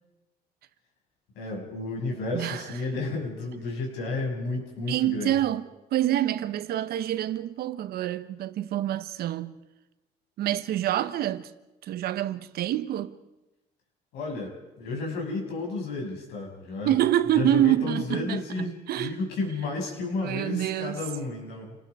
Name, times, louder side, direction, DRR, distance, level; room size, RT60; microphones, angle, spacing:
voice 1, 1.4-5.3 14.1-17.0 17.3-21.8, left 3 dB, 85° left, 6.7 m, -32 dB
voice 2, 4.9-9.6 10.4-11.5 11.8-13.1 16.8-19.1 20.2-21.0, right 12 dB, 65° right, 1.1 m, -27 dB
29.0 x 19.0 x 4.9 m
cardioid pair, 110°, 17 cm